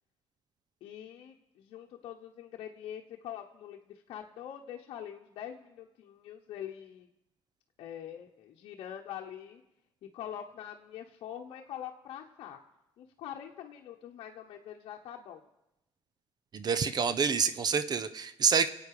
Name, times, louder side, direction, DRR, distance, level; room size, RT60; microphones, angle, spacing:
voice 1, 0.8-7.1 7.8-9.6 10.1-12.6 13.0-15.4, left 10 dB, 70° left, 0 dB, 1.0 m, -44 dB
voice 2, 16.5-18.7, right 6 dB, 45° right, 12 dB, 0.8 m, -27 dB
26.0 x 8.8 x 4.9 m, 0.90 s
cardioid pair, 85°, 10 cm